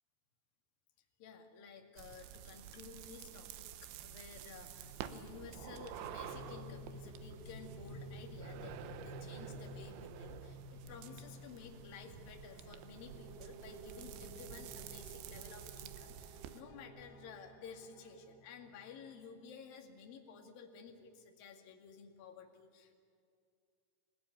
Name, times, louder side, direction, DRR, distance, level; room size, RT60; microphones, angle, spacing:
voice 1, 1.2-22.9, left 5 dB, 55° left, 3 dB, 3.7 m, -53 dB
sound 1, 2.0-16.6, right 10 dB, 90° right, 3.4 m, -50 dB
sound 2, 4.5-19.0, equal, 55° right, 4.8 m, -53 dB
28.0 x 17.5 x 9.8 m, 2.4 s
omnidirectional pair, 5.2 m